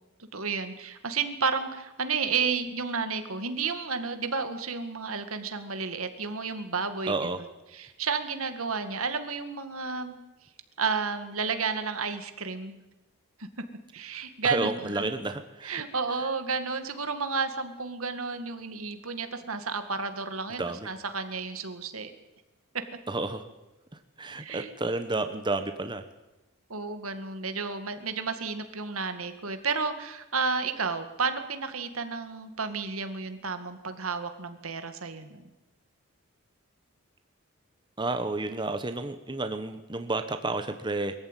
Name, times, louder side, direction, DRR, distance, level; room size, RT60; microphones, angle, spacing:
voice 1, 0.2-7.5 7.7-10.2 10.8-12.8 13.4-13.5 13.9-15.1 15.6-22.1 22.7-22.8 24.4-24.7 26.7-35.4, right 5 dB, 75° right, 8 dB, 2.1 m, -32 dB
voice 2, 7.1-7.4 14.4-15.8 20.6-20.9 23.1-23.4 24.2-26.0 38.0-41.1, right 2 dB, 20° right, 8 dB, 1.1 m, -31 dB
22.5 x 14.5 x 9.2 m, 1.0 s
head